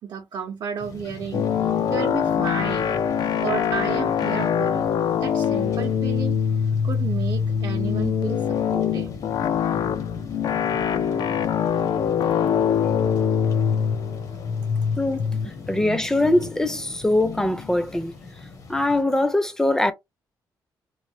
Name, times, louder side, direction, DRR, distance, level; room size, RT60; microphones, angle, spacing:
voice 1, 0.0-3.0 3.4-6.4 6.8-9.1, right 7 dB, 65° right, 0.6 m, -32 dB
sound 1, 0.8-19.0, left 3 dB, 50° left, 0.8 m, -42 dB
sound 2, 1.3-17.9, left 7 dB, 65° left, 0.4 m, -24 dB
voice 2, 15.0-18.1 18.7-19.9, left 1 dB, 5° left, 0.5 m, -22 dB
3.1 x 2.2 x 2.7 m
cardioid pair, 125°, 8 cm